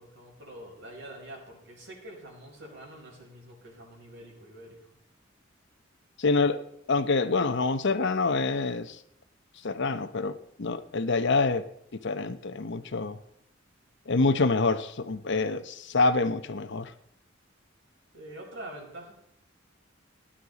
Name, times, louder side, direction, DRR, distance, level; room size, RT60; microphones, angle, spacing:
voice 1, 0.0-4.9 18.1-19.1, right 1 dB, 65° right, -2 dB, 5.4 m, -45 dB
voice 2, 6.2-6.6 6.9-9.0 9.6-11.7 12.0-13.2 14.1-16.9, left 3 dB, 60° left, 11 dB, 0.8 m, -26 dB
17.5 x 10.0 x 4.1 m, 0.75 s
head